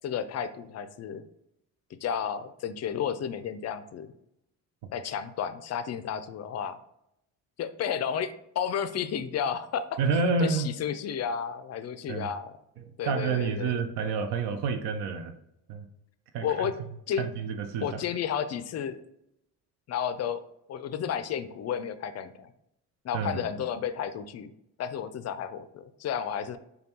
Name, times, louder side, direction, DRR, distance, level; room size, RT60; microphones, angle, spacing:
voice 1, 0.0-1.2 2.0-4.1 4.9-6.8 7.6-10.0 10.4-12.5 13.0-13.8 16.4-16.7 17.1-17.3 17.8-19.0 19.9-20.4 20.7-22.5 23.0-24.5 24.8-26.6, left 8 dB, 40° left, 12 dB, 0.4 m, -32 dB
voice 2, 10.0-10.7 12.1-12.3 12.8-15.3 15.7-15.9 16.3-16.7 17.2-18.0 23.1-23.4, right 4 dB, 65° right, 8 dB, 0.5 m, -29 dB
5.1 x 2.3 x 2.8 m, 0.81 s
supercardioid pair, 60°, 44 cm